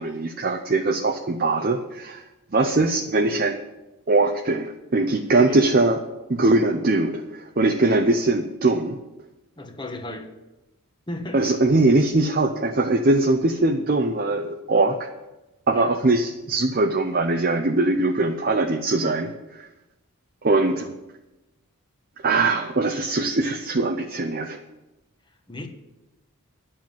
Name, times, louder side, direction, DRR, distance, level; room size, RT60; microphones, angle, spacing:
voice 1, 0.0-3.6 4.1-6.0 6.3-9.0 11.3-15.1 15.7-19.7 20.4-20.9 22.2-24.6, right 2 dB, 40° right, 5 dB, 0.6 m, -21 dB
voice 2, 9.6-10.3 11.1-11.5 15.7-15.9 20.7-20.9 25.5-25.7, left 1 dB, 20° left, 5 dB, 1.2 m, -35 dB
11.0 x 7.4 x 7.5 m, 1.0 s
head